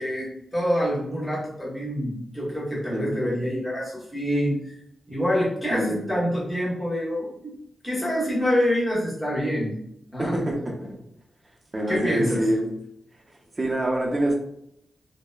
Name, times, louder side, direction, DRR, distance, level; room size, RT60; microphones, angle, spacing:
voice 1, 0.0-4.7 5.1-7.6 7.8-9.8 10.1-10.4 11.9-12.4, equal, 5° left, -8 dB, 1.1 m, -26 dB
voice 2, 2.9-3.4 5.7-6.0 10.2-11.0 11.7-12.8 13.3-14.3, right 1 dB, 25° right, -1 dB, 0.6 m, -26 dB
2.8 x 2.0 x 2.2 m, 0.75 s
wide cardioid pair, 115°, 0 cm